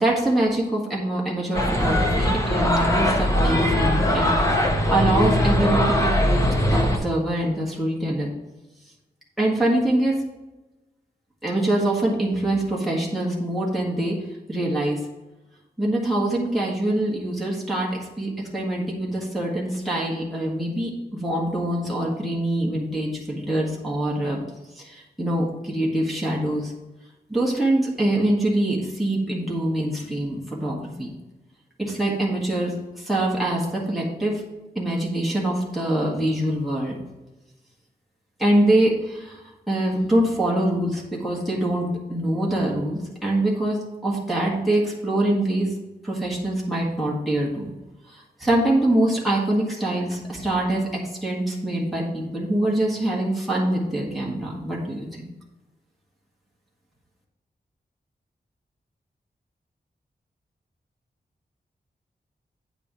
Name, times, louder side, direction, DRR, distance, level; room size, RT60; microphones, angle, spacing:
voice 1, 0.0-4.3 4.7-6.4 6.6-8.3 9.4-10.2 11.4-14.2 14.5-15.0 15.8-24.4 24.8-26.7 27.3-31.1 31.8-34.4 34.8-37.0 38.4-39.4 39.7-45.7 46.0-47.7 48.1-55.2, right 1 dB, ahead, -4 dB, 1.8 m, -24 dB
sound 1, 1.5-7.0, left 1 dB, 20° left, 1.2 m, -21 dB
8.9 x 4.9 x 4.7 m, 1.1 s
wide cardioid pair, 160°, 17 cm